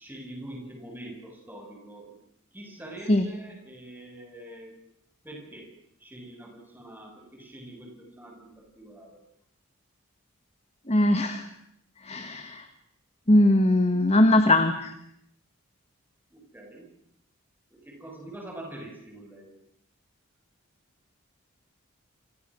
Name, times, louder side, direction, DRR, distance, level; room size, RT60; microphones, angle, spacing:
voice 1, 0.0-2.2 2.5-4.8 5.2-5.7 6.0-9.2 16.3-16.9 17.7-19.6, right 1 dB, 10° right, 1 dB, 7.6 m, -44 dB
voice 2, 10.9-11.4 12.0-12.7 13.3-14.9, left 1 dB, 30° left, 7 dB, 1.8 m, -21 dB
29.5 x 26.0 x 6.5 m, 0.74 s
head